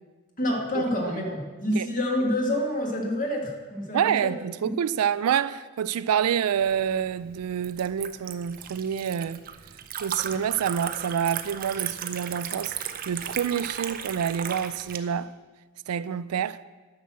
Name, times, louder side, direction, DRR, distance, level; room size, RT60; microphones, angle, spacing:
voice 1, 0.4-4.3 4.6-4.7, left 1 dB, 35° left, 1.8 m, -27 dB
voice 2, 3.9-9.4 10.0-12.8 13.1-15.3 15.9-16.6, right 8 dB, 90° right, 0.4 m, -27 dB
Liquid, 6.6-15.0, right 9 dB, 40° right, 0.6 m, -36 dB
10.5 x 6.1 x 7.4 m
head